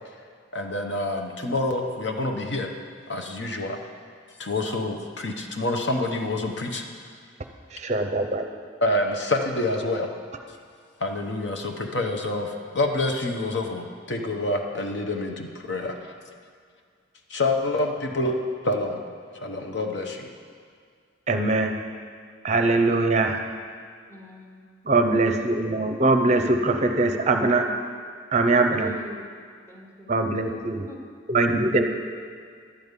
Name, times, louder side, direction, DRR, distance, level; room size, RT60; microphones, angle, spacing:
voice 1, 0.5-2.7 3.1-3.8 4.4-6.8 8.8-10.1 11.0-16.1 17.3-18.4 18.6-19.0 19.3-20.3, left 2 dB, 60° left, 3 dB, 0.9 m, -27 dB
voice 2, 7.7-8.4 21.3-21.7 22.4-23.4 24.9-27.7 28.3-28.9 30.1-30.9 31.3-31.8, right 2 dB, 35° right, 5 dB, 0.6 m, -22 dB
voice 3, 22.5-23.0 24.1-24.6 28.8-29.2 29.7-31.1, right 1 dB, 15° left, -1 dB, 1.1 m, -42 dB
11.5 x 5.3 x 8.1 m, 2.1 s
head